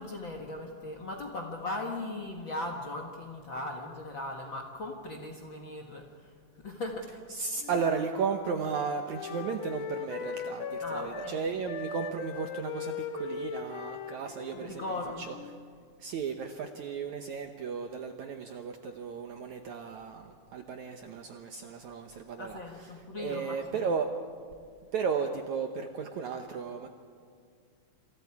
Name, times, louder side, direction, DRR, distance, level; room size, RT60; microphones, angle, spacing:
voice 1, 0.0-7.1 10.8-11.5 14.5-15.3 22.4-23.9, left 2 dB, 45° left, 2 dB, 1.7 m, -38 dB
voice 2, 7.3-14.8 15.2-15.4 16.0-22.9 23.2-24.1 24.9-26.9, right 5 dB, 70° right, 5 dB, 1.9 m, -34 dB
Wind instrument woodwind instrument, 7.6-11.4 11.6-15.8, left 6 dB, 60° left, 2.6 m, -39 dB
27.5 x 27.5 x 4.8 m, 2.2 s
omnidirectional pair, 4.4 m